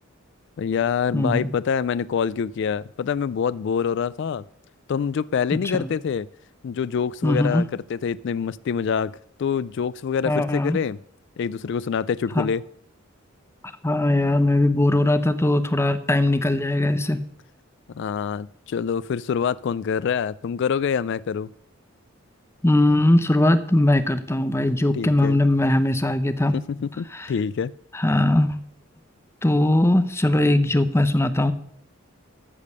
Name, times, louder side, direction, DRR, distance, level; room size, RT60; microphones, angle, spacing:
voice 1, 0.6-4.4 4.9-6.3 6.6-9.1 9.4-11.0 11.4-12.6 17.9-21.5 24.9-25.4 26.5-27.7, left 7 dB, 60° left, 18 dB, 0.3 m, -25 dB
voice 2, 1.1-1.5 5.7-5.9 7.2-7.7 10.3-10.8 12.4-12.5 13.8-17.2 22.6-26.5 27.1-27.3 27.9-28.6 29.4-31.5, left 1 dB, 15° left, 11 dB, 0.7 m, -20 dB
13.5 x 5.2 x 6.7 m, 0.64 s
head